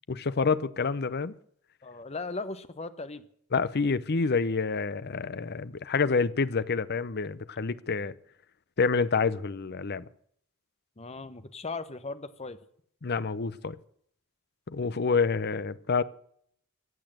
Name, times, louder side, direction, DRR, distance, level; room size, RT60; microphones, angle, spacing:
voice 1, 0.1-1.3 3.5-8.1 8.8-10.0 13.0-13.8 14.7-16.0, left 4 dB, 50° left, 0.7 m, -28 dB
voice 2, 1.8-3.2 11.0-12.6, left 3 dB, 30° left, 1.0 m, -37 dB
15.5 x 8.3 x 7.7 m
head